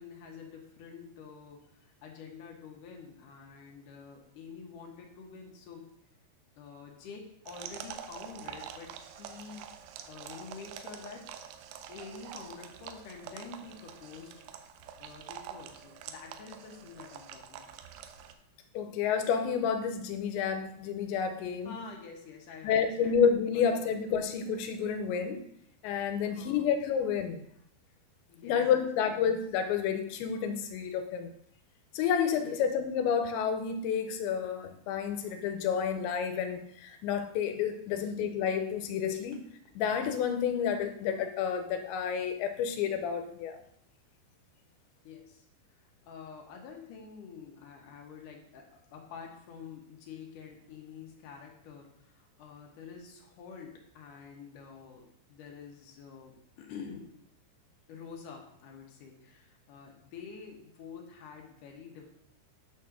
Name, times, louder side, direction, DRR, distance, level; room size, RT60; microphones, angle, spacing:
voice 1, 0.0-5.9 6.6-9.6 10.1-11.2 11.9-14.4 15.0-17.8 21.6-23.1 23.5-24.2 26.2-26.7 28.3-29.1 32.3-32.7 38.0-38.1 45.0-57.1 57.9-62.1, left 6 dB, 65° left, 1 dB, 2.3 m, -48 dB
sound 1, 7.5-18.3, right 9 dB, 85° right, 3.0 m, -46 dB
voice 2, 18.7-21.8 22.6-25.4 25.8-27.4 28.4-31.3 31.9-39.4 39.8-43.6, left 7 dB, 90° left, 7 dB, 3.0 m, -30 dB
9.9 x 4.3 x 6.3 m, 0.72 s
omnidirectional pair, 5.2 m